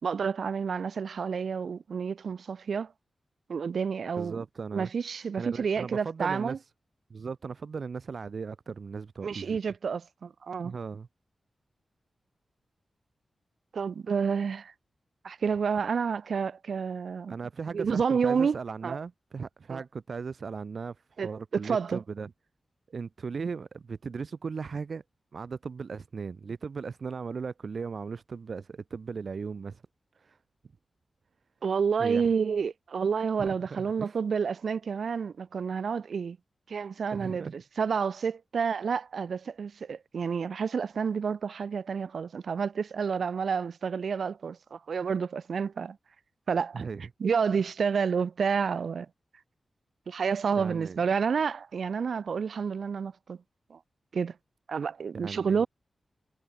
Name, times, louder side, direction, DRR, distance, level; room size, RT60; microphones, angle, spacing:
voice 1, 0.0-2.9 3.5-4.4 4.7-6.6 9.2-10.7 13.7-14.7 15.2-17.3 17.7-18.6 18.8-19.0 19.7-19.8 21.2-22.0 31.6-36.4 36.7-46.0 46.5-46.8 47.2-49.1 50.1-53.4 53.7-53.8 54.1-54.3 54.7-55.7, right 6 dB, 70° right, 1.7 m, -29 dB
voice 2, 4.1-4.9 5.4-6.6 7.1-9.6 10.6-11.1 17.3-21.0 21.2-22.3 22.9-25.0 25.3-29.8 30.2-30.4 32.0-32.3 33.4-34.2 37.1-37.6 46.7-47.0 50.5-51.0 55.1-55.7, right 5 dB, 55° right, 3.0 m, -37 dB
wide cardioid pair, 150°, 0 cm